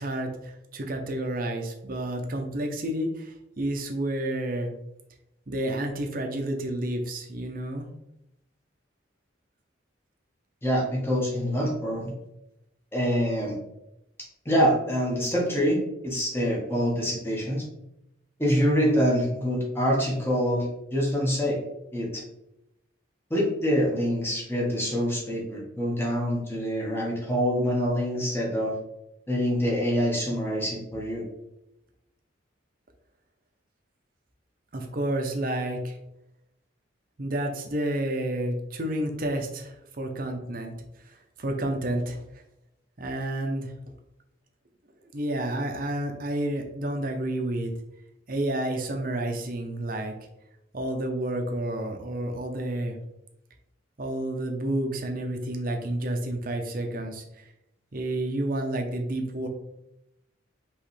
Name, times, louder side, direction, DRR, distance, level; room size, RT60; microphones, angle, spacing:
voice 1, 0.0-4.7 5.5-7.9 34.7-36.0 37.2-40.7 41.0-42.2 43.0-43.7 45.1-47.7 48.3-50.1 50.7-53.0 54.0-57.5 57.9-59.5, right 1 dB, 45° right, 3 dB, 0.7 m, -30 dB
voice 2, 10.6-12.1 12.9-13.6 14.4-17.6 18.4-21.6 21.9-22.2 23.3-28.7 29.3-31.2, equal, 10° left, -3 dB, 1.1 m, -25 dB
5.1 x 3.2 x 3.2 m, 0.86 s
head